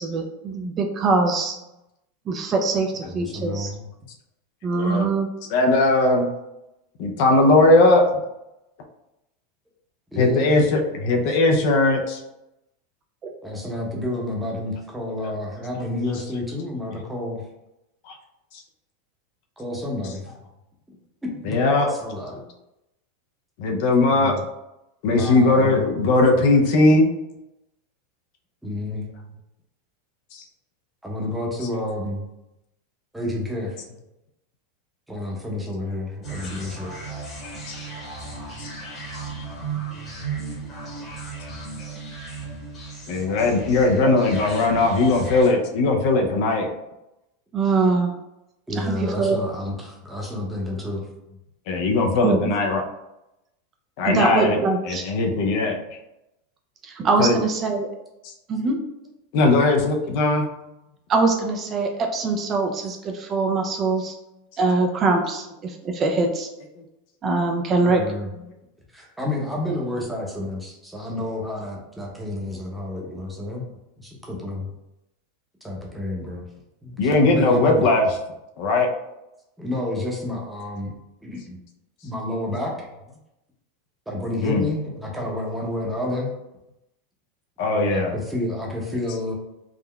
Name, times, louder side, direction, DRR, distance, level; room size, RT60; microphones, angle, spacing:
voice 1, 0.0-1.6 2.3-3.7 4.6-5.3 13.2-13.3 44.1-44.2 47.5-48.1 48.7-49.4 52.2-52.6 54.1-55.0 56.8-57.9 58.5-58.8 61.1-64.2 64.6-66.5 67.2-68.0, right 3 dB, 30° right, 3 dB, 0.3 m, -23 dB
voice 2, 3.0-3.9 10.1-10.6 13.4-17.4 19.6-20.3 21.4-22.4 24.1-24.4 25.1-25.9 28.6-29.1 31.0-32.3 33.1-33.8 35.1-36.9 48.7-51.1 67.8-68.3 68.9-73.6 74.0-74.7 75.6-76.4 76.8-77.9 79.6-81.0 81.2-81.6 82.0-82.7 84.1-86.3 87.7-89.3, left 1 dB, 5° right, -2 dB, 0.7 m, -30 dB
voice 3, 4.7-5.1 5.5-6.3 7.0-8.0 10.2-12.2 18.1-18.2 21.5-21.9 23.6-24.3 25.0-27.1 30.3-30.4 37.7-37.8 38.6-38.7 43.1-46.7 51.7-52.8 54.0-54.6 54.9-55.8 57.2-57.4 59.3-60.5 77.0-78.1 78.6-78.9 84.4-84.7 87.6-88.1, left 2 dB, 60° left, 3 dB, 0.5 m, -19 dB
sound 1, 36.2-45.5, right 4 dB, 25° left, 1.0 m, -35 dB
3.6 x 2.0 x 2.2 m, 0.90 s
supercardioid pair, 130°, 0 cm